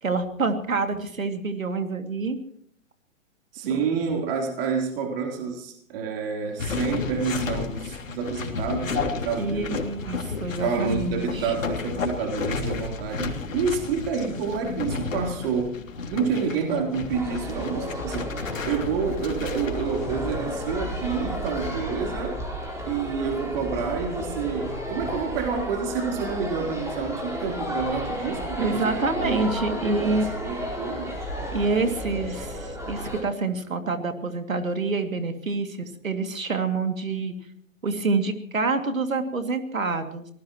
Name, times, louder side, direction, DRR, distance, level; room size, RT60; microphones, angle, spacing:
voice 1, 0.0-2.4 3.7-3.8 9.4-11.5 28.6-30.2 31.5-37.3 37.8-40.3, right 3 dB, 85° right, 6 dB, 2.7 m, -27 dB
voice 2, 3.5-9.8 10.6-18.3 18.6-22.5 22.9-31.2, right 5 dB, 45° right, 2 dB, 3.8 m, -29 dB
sound 1, 6.6-21.8, left 5 dB, 75° left, 3.1 m, -33 dB
sound 2, 17.1-33.2, equal, 5° right, 4.6 m, -33 dB
25.0 x 18.5 x 3.1 m, 0.66 s
figure-of-eight pair, 120°, 40 cm